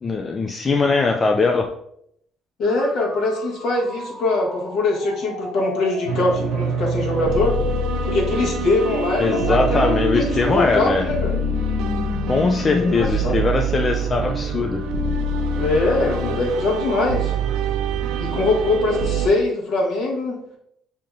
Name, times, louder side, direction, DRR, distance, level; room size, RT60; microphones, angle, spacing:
voice 1, 0.0-1.7 9.2-11.1 12.3-14.8, left 4 dB, 25° left, 3 dB, 0.3 m, -21 dB
sound 1, 2.6-12.9, left 2 dB, 85° left, 1.4 m, -31 dB
voice 2, 2.6-7.5 8.0-11.3 12.8-13.4 15.6-17.3 18.2-20.4, left 2 dB, 60° left, -2 dB, 1.3 m, -22 dB
sound 2, 6.1-19.3, right 3 dB, 80° right, 0.5 m, -25 dB
6.7 x 2.8 x 2.6 m, 0.72 s
cardioid pair, 140°, 0 cm